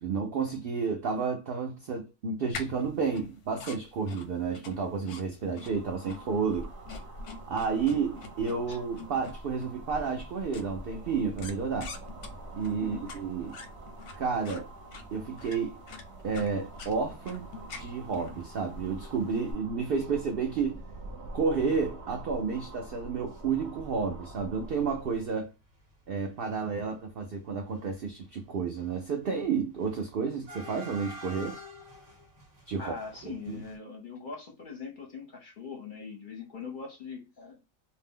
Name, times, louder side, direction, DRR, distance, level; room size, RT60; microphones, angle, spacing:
voice 1, 0.0-6.7 7.5-11.9 12.5-13.6 14.2-14.7 15.1-15.8 16.2-17.5 17.7-20.8 21.3-25.5 26.1-31.6 32.7-32.9 33.2-33.6, right 5 dB, 80° right, 0.5 m, -31 dB
sound 1, 2.5-19.5, left 4 dB, 90° left, 1.1 m, -47 dB
sound 2, 5.4-25.3, right 1 dB, 60° right, 0.8 m, -45 dB
voice 2, 12.8-13.1 32.8-37.6, left 5 dB, 50° left, 0.6 m, -42 dB
sound 3, 18.5-18.6 18.8-18.9 19.7-19.8 20.2-20.4 20.7-20.8 21.2-23.4 23.7-24.4 24.7-33.8, left 1 dB, 30° right, 1.0 m, -50 dB
2.6 x 2.0 x 3.5 m
omnidirectional pair, 1.5 m